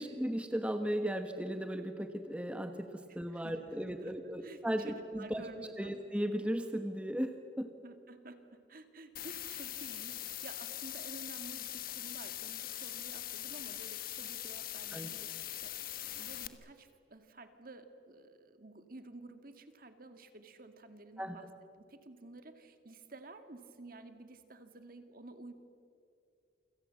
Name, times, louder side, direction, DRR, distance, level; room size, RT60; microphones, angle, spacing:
voice 1, 0.0-5.4 5.8-7.7 14.9-15.1 21.2-21.4, equal, 5° right, 6 dB, 1.2 m, -36 dB
voice 2, 3.1-4.1 4.4-6.0 7.8-15.8 16.1-21.5 21.8-25.5, right 2 dB, 50° right, 8 dB, 2.0 m, -52 dB
sound 1, 9.2-16.5, left 13 dB, 50° left, 1.3 m, -42 dB
28.5 x 25.5 x 7.6 m, 2.4 s
head